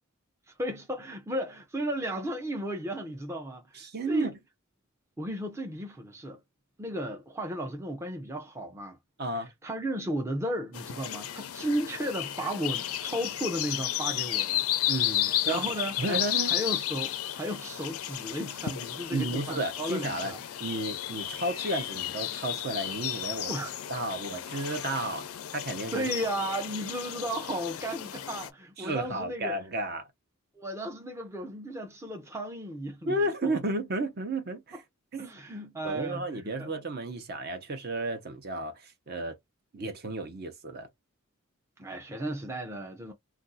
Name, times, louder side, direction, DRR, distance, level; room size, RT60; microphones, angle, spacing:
voice 1, 0.6-4.3 5.2-6.4 6.8-9.0 9.4-14.7 15.3-16.2 16.5-20.4 23.5-23.8 25.9-29.6 30.6-33.1 33.4-33.6 35.2-36.7 41.8-43.1, right 1 dB, 15° right, 0.5 m, -34 dB
voice 2, 3.7-4.3 9.2-9.5 14.9-15.7 16.0-16.6 19.1-20.3 20.6-23.5 23.9-25.3 25.5-26.1 28.8-30.1 33.1-34.8 35.1-35.3 35.8-39.4 39.7-40.9, right 2 dB, 45° right, 0.7 m, -32 dB
sound 1, 10.7-28.5, left 12 dB, 85° left, 0.5 m, -33 dB
2.5 x 2.3 x 3.9 m
head